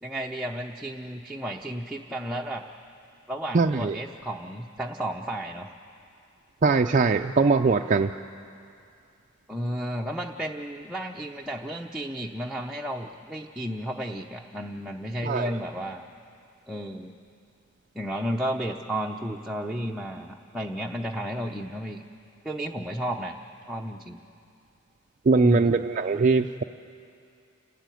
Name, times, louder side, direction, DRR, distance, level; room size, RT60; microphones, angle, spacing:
voice 1, 0.0-2.7 3.3-5.7 9.5-16.0 16.7-17.1 17.9-22.0 22.4-23.4 23.7-24.2 25.3-25.8, right 1 dB, 5° right, -2 dB, 0.7 m, -32 dB
voice 2, 3.5-4.0 6.6-8.1 15.2-15.6 25.3-26.6, right 4 dB, 40° right, 5 dB, 0.4 m, -21 dB
30.0 x 13.0 x 9.2 m, 2.5 s
head